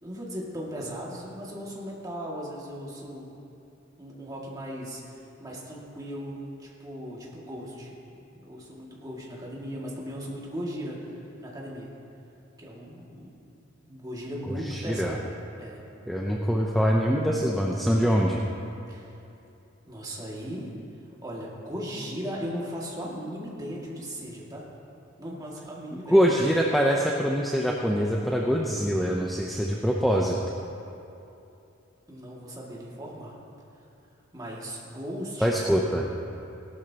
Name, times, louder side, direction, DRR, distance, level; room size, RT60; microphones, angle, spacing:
voice 1, 0.0-3.3 4.0-11.9 12.6-13.3 13.9-15.3 15.6-15.8 18.9-19.1 19.9-20.7 21.2-24.7 25.2-26.4 32.1-33.4 34.3-35.6, equal, 20° right, -4 dB, 2.1 m, -37 dB
voice 2, 14.5-15.1 16.1-18.4 26.1-30.4 35.4-36.1, equal, ahead, -2 dB, 0.6 m, -24 dB
17.5 x 12.0 x 2.9 m, 2.8 s
head